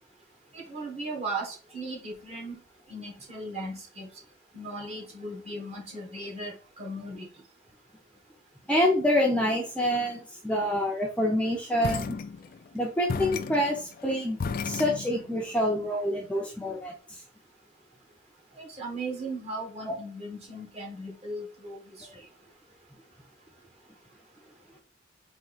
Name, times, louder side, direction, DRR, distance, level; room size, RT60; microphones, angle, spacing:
voice 1, 0.5-2.6 2.9-4.1 4.5-7.3 18.6-22.2, right 2 dB, 35° right, 0 dB, 1.4 m, -37 dB
voice 2, 8.7-12.2 12.7-14.4 14.6-17.2 19.9-20.0 22.0-22.1, left 1 dB, 5° left, -1 dB, 0.7 m, -27 dB
sound 1, 11.8-12.7 13.1-15.5, left 5 dB, 50° left, 0.4 m, -34 dB
4.3 x 2.8 x 4.0 m, 0.38 s
head